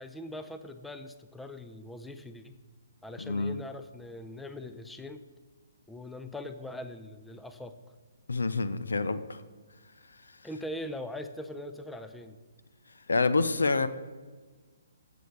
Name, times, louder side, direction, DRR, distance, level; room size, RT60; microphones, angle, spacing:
voice 1, 0.0-2.5 3.0-5.3 5.9-7.8 10.4-12.4, left 1 dB, 5° left, 9 dB, 0.5 m, -41 dB
voice 2, 3.2-3.6 8.3-9.4 13.1-13.9, left 3 dB, 75° left, 13 dB, 0.6 m, -27 dB
15.5 x 6.9 x 3.3 m, 1.4 s
figure-of-eight pair, 135°, 0 cm